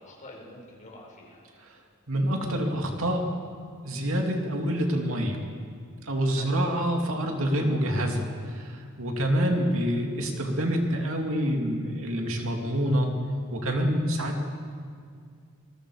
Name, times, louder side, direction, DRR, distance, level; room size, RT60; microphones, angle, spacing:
voice 1, 0.0-1.5 6.3-6.6, left 1 dB, 35° left, -1 dB, 4.9 m, -47 dB
voice 2, 2.1-3.2 3.8-5.4 6.0-13.1 13.5-14.4, equal, 65° right, 2 dB, 2.8 m, -27 dB
26.5 x 22.5 x 5.1 m, 2.1 s
head